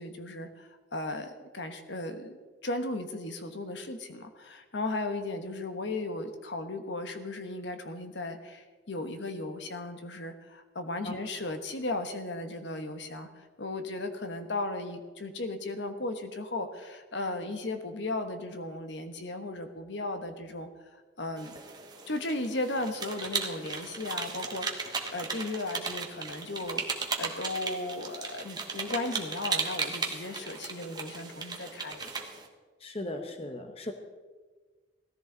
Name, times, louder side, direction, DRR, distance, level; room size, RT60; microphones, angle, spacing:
voice 1, 0.0-2.4 2.6-21.5 22.1-26.8 27.2-32.1, left 2 dB, 70° left, 7 dB, 1.2 m, -36 dB
sound 1, 21.4-32.5, right 4 dB, 20° right, 1.2 m, -36 dB
voice 2, 32.8-33.9, left 1 dB, 30° left, 6 dB, 1.0 m, -37 dB
17.5 x 14.0 x 3.9 m, 1.4 s
head